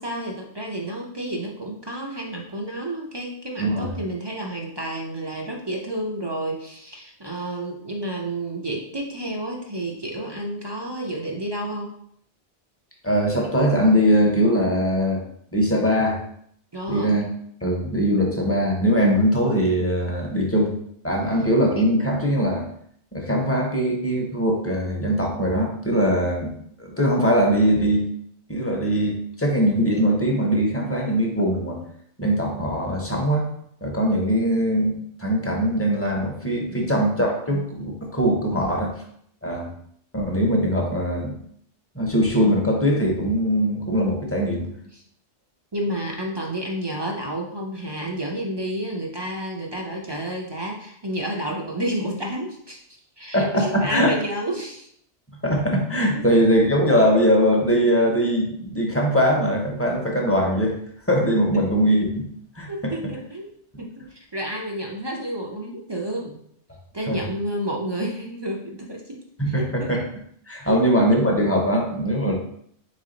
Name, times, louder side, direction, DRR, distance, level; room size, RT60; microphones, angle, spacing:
voice 1, 0.0-11.9 16.7-17.2 36.7-37.0 38.5-38.9 44.9-45.0 45.7-52.8 53.2-54.9 62.7-63.5 63.8-66.4 66.9-69.2 69.5-69.9 70.6-70.8, right 1 dB, 35° right, -1 dB, 0.4 m, -30 dB
voice 2, 3.6-4.0 13.0-15.2 15.5-16.2 16.9-17.2 17.6-20.7 21.0-22.7 23.1-26.5 26.8-28.1 28.5-31.8 32.2-33.5 33.8-38.9 39.4-39.7 40.1-41.3 41.9-44.7 53.3-54.1 55.4-60.7 61.1-62.2 62.6-62.9 67.1-67.2 69.4-70.0 70.5-72.4, equal, 15° left, 0 dB, 0.6 m, -21 dB
3.6 x 3.3 x 3.8 m, 0.68 s
omnidirectional pair, 1.2 m